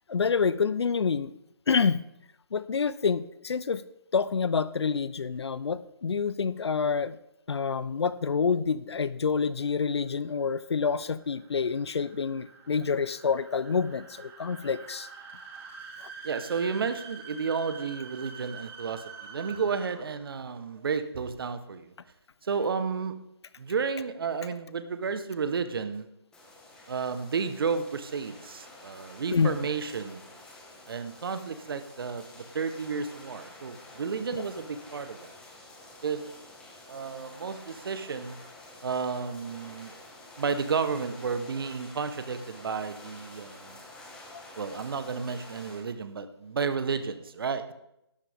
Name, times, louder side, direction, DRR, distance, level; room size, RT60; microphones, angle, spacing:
voice 1, 0.1-1.3 1.7-2.0 2.5-3.8 4.1-7.2 7.5-15.1 16.0-16.1 29.3-29.6 34.3-34.4 44.3-44.4, left 5 dB, 75° left, 17 dB, 0.7 m, -27 dB
sound 1, 9.6-20.3, right 5 dB, 15° right, 1.2 m, -47 dB
voice 2, 16.2-21.9 22.4-23.2 23.6-26.1 26.9-30.3 30.9-35.3 36.0-36.3 36.9-38.4 38.8-39.9 40.4-43.8 44.6-47.7, right 5 dB, 60° right, 11 dB, 1.2 m, -32 dB
sound 2, 26.3-45.8, left 2 dB, 5° left, 1.6 m, -49 dB
13.0 x 12.0 x 3.6 m, 0.84 s
hypercardioid pair, 155°, 14 cm